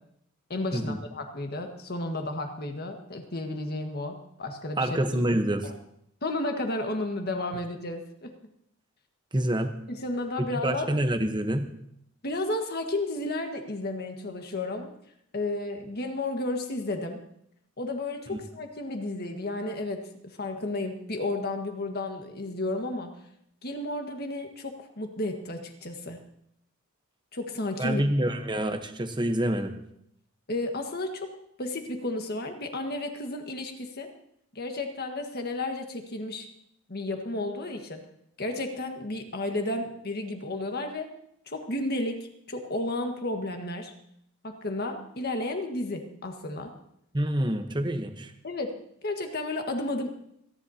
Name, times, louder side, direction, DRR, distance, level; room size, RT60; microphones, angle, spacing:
voice 1, 0.5-5.2 5.6-5.7 6.2-8.3 9.9-10.9 12.2-14.9 15.3-17.2 17.8-23.1 23.6-26.2 27.3-28.0 30.5-31.3 31.6-34.1 34.5-36.5 36.9-38.0 38.4-41.1 41.5-43.9 44.4-46.7 48.4-48.8 49.0-50.1, left 2 dB, 45° left, 4 dB, 1.6 m, -32 dB
voice 2, 4.8-5.7 9.3-9.7 10.6-11.7 18.3-18.4 27.8-29.8 47.1-48.3, right 1 dB, 20° right, 7 dB, 1.0 m, -27 dB
27.5 x 10.5 x 2.8 m, 0.73 s
head